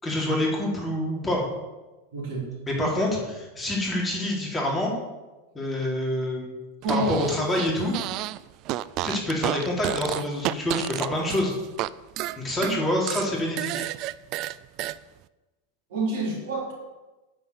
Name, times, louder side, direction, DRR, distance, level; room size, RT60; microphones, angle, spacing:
voice 1, 0.0-1.4 2.7-4.9 5.5-6.5 6.9-8.0 9.0-11.5 12.4-13.8, left 1 dB, 15° left, -2 dB, 3.5 m, -26 dB
voice 2, 2.1-2.5 2.8-2.9 6.8-7.1 15.9-16.7, right 2 dB, 65° right, -2 dB, 3.5 m, -28 dB
Fart, 6.8-8.4 8.6-11.9 12.2-15.0, right 16 dB, 45° right, 0.3 m, -31 dB
9.5 x 5.5 x 6.8 m, 1.1 s
figure-of-eight pair, 90°, 0 cm